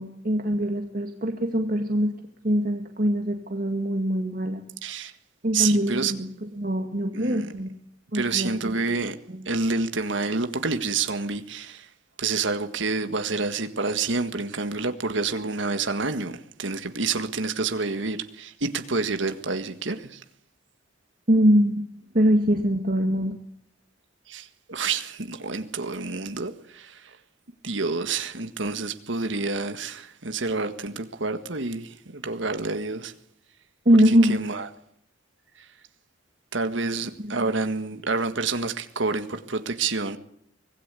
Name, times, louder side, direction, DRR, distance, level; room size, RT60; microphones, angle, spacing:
voice 1, 0.0-2.1 2.4-4.6 5.4-7.7 8.1-8.8 9.3-9.4 21.3-21.8 22.1-23.3 33.9-34.4 37.3-37.4, equal, 45° right, 2.2 m, -23 dB
voice 2, 4.8-5.1 5.5-6.1 7.1-7.5 8.1-9.2 9.5-11.9 12.2-20.2 24.3-27.2 27.6-33.1 34.1-34.7 35.6-35.7 36.5-40.2, right 4 dB, 75° right, 1.7 m, -28 dB
25.0 x 19.0 x 8.4 m
head